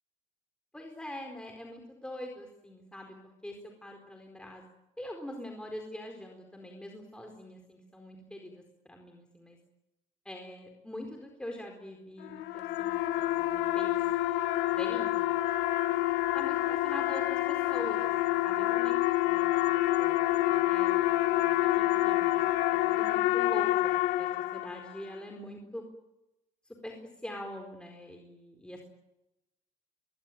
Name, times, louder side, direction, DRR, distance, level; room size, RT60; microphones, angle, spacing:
voice 1, 0.7-3.2 3.4-3.6 3.8-4.6 5.0-9.6 10.2-14.0 14.7-15.2 16.3-19.0 19.3-19.6 20.0-23.7 24.2-25.8 26.8-27.0 27.2-28.9, left 1 dB, 5° left, 2 dB, 4.3 m, -44 dB
sound 1, 12.2-25.0, left 16 dB, 85° left, 1.2 m, -28 dB
23.0 x 20.5 x 9.3 m, 0.92 s
cardioid pair, 110°, 17 cm